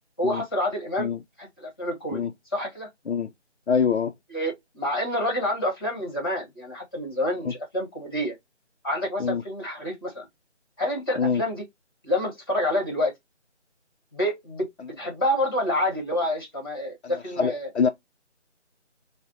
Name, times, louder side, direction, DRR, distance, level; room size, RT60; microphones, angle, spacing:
voice 1, 0.2-1.1 1.4-2.3 2.5-2.9 4.3-8.3 8.8-10.3 10.8-11.6 12.0-13.1 14.1-14.7 15.0-17.7, left 1 dB, 20° left, 1.1 m, -28 dB
voice 2, 3.7-4.1 7.4-7.5 9.2-9.4 11.2-11.4 17.0-17.9, left 6 dB, 65° left, 0.5 m, -25 dB
5.8 x 2.1 x 2.7 m
figure-of-eight pair, 160°, 36 cm